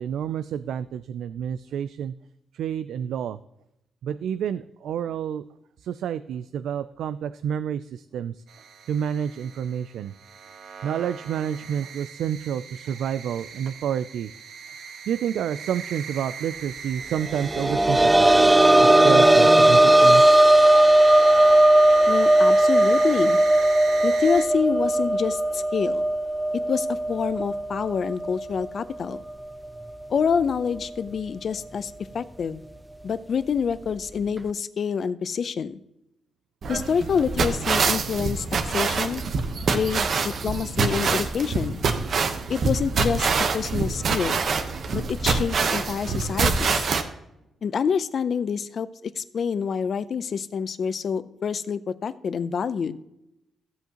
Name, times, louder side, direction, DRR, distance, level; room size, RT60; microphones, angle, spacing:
voice 1, 0.0-2.1 2.5-3.4 4.0-5.4 5.8-8.4 8.9-10.1 10.8-14.3 15.1-20.4, right 9 dB, 90° right, 12 dB, 0.3 m, -29 dB
sound 1, 8.5-24.5, right 6 dB, 70° right, 1.2 m, -40 dB
sound 2, 17.3-28.8 29.1-29.2 30.8-30.9, right 1 dB, 10° right, 0.3 m, -18 dB
voice 2, 22.1-23.4 24.0-26.0 26.7-29.2 30.1-32.6 33.0-35.8 36.7-39.2 39.7-41.8 42.5-43.3 43.5-44.4 44.9-46.9 47.6-48.9 49.2-53.0, left 6 dB, 50° left, 14 dB, 0.5 m, -27 dB
sound 3, 36.6-47.0, right 4 dB, 50° right, 1.0 m, -25 dB
15.5 x 8.1 x 2.9 m, 0.84 s
wide cardioid pair, 145°, 0 cm